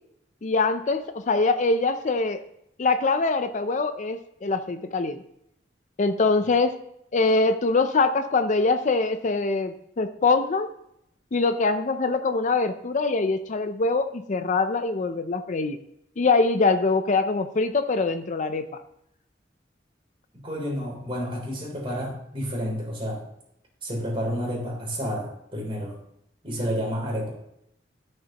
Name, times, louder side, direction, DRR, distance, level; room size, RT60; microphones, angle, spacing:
voice 1, 0.4-2.4 2.8-5.2 6.0-6.7 7.1-10.7 11.3-15.8 16.2-18.6, left 3 dB, 45° left, 9 dB, 0.5 m, -23 dB
voice 2, 20.3-23.2 23.8-25.9 26.4-27.3, equal, 30° right, -2 dB, 3.3 m, -30 dB
13.0 x 6.5 x 2.9 m, 0.76 s
head